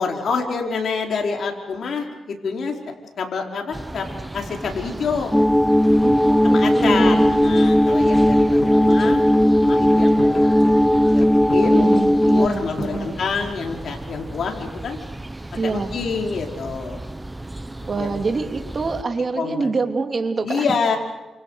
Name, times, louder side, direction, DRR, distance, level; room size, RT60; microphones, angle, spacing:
voice 1, 0.0-2.7 3.2-5.3 6.4-9.3 9.5-10.7 11.1-11.8 12.3-15.0 15.6-17.0 18.0-18.2 19.4-19.7 20.4-21.0, left 5 dB, 70° left, 2 dB, 4.8 m, -27 dB
sound 1, 3.7-19.0, right 1 dB, 15° right, 1.1 m, -35 dB
sound 2, 5.3-12.5, equal, 5° left, 0.9 m, -16 dB
voice 2, 6.0-7.4 11.7-13.2 15.6-16.0 17.9-20.7, right 4 dB, 45° right, 5 dB, 3.2 m, -26 dB
sound 3, 8.1-8.3 8.6-13.0, left 3 dB, 55° left, 7.3 m, -34 dB
28.5 x 27.0 x 6.6 m, 1.1 s
cardioid pair, 80°, 0 cm